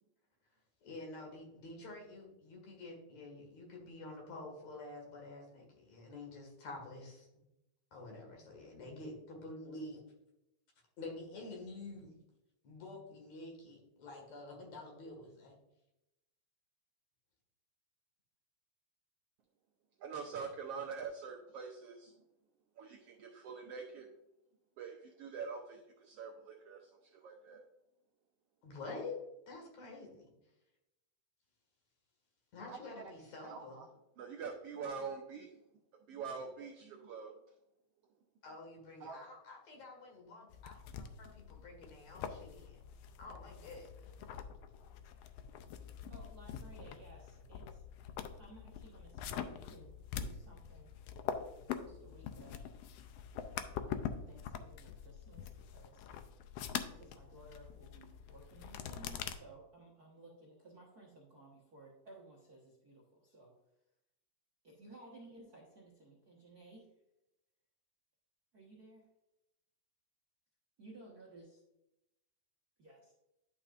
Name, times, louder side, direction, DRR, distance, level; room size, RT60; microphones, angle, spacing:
voice 1, 0.8-7.3 7.9-10.0 11.0-12.2 12.6-15.5 28.6-29.2 29.5-30.3 32.5-33.8 38.4-42.8 43.2-44.4, left 2 dB, 65° left, 1 dB, 3.1 m, -48 dB
voice 2, 20.0-22.1 22.8-24.1 24.8-27.6 32.7-33.0 33.4-33.9 34.2-35.6 36.1-37.3 39.0-39.2, right 5 dB, 80° right, 2 dB, 1.4 m, -45 dB
sound 1, 40.5-59.3, left 8 dB, 85° left, 1.4 m, -44 dB
voice 3, 46.1-50.9 51.6-52.6 53.8-56.1 56.9-63.6 64.6-66.9 68.5-69.1 70.8-71.6 72.8-73.1, right 2 dB, 50° right, -3 dB, 1.2 m, -57 dB
10.5 x 5.7 x 2.5 m, 0.88 s
omnidirectional pair, 3.5 m